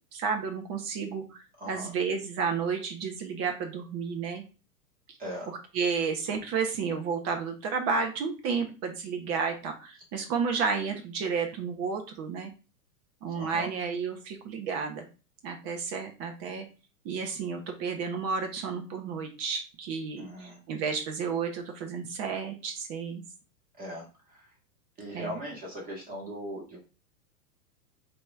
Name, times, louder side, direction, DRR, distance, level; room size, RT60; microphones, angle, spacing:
voice 1, 0.1-4.4 5.1-5.2 5.5-12.5 13.2-15.1 15.4-16.7 17.0-23.2 25.1-25.3, right 5 dB, 35° right, 5 dB, 1.0 m, -32 dB
voice 2, 1.6-1.9 5.2-5.5 13.4-13.7 20.2-20.6 23.8-24.5 25.0-26.8, equal, 20° right, -2 dB, 2.0 m, -39 dB
4.8 x 3.1 x 3.6 m, 0.33 s
hypercardioid pair, 130°, 47 cm